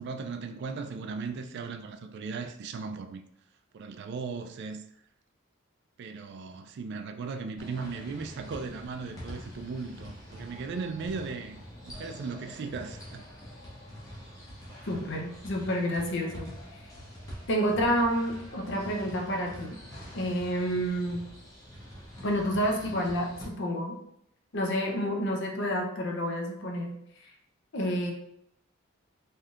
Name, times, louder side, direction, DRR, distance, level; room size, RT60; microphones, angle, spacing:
voice 1, 0.0-3.2 3.7-4.8 6.0-11.6 11.8-13.3, right 4 dB, 55° right, 0.3 m, -37 dB
sound 1, 7.6-23.5, equal, 15° left, 0.7 m, -45 dB
voice 2, 14.8-16.5 17.5-19.8 20.1-21.2 22.2-24.0 24.5-27.0 27.7-28.1, equal, 55° left, 0.6 m, -29 dB
3.4 x 2.7 x 2.4 m
head